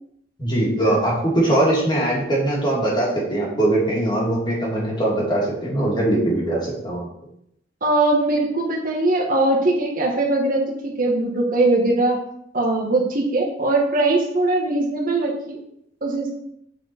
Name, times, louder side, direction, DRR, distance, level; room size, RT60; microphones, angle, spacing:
voice 1, 0.4-7.1, right 1 dB, 25° left, -4 dB, 2.3 m, -21 dB
voice 2, 7.8-12.2 12.5-15.6 16.0-16.3, right 2 dB, 50° right, 0 dB, 1.3 m, -21 dB
8.1 x 4.5 x 4.4 m, 0.75 s
head